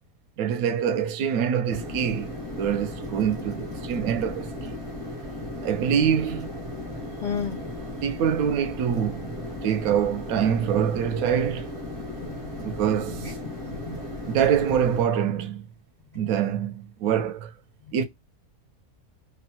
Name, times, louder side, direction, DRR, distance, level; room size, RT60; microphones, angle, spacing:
voice 1, 0.4-4.8 5.6-6.5 8.0-9.3 9.6-11.8 12.6-13.3 14.3-15.7 16.1-17.5 17.9-18.0, right 8 dB, 75° right, 1.0 m, -25 dB
sound 1, 1.7-15.0, left 1 dB, 40° right, 0.4 m, -36 dB
voice 2, 7.2-7.6 12.2-13.3 13.6-14.3, left 6 dB, 70° left, 0.4 m, -35 dB
2.8 x 2.0 x 2.7 m
omnidirectional pair, 1.6 m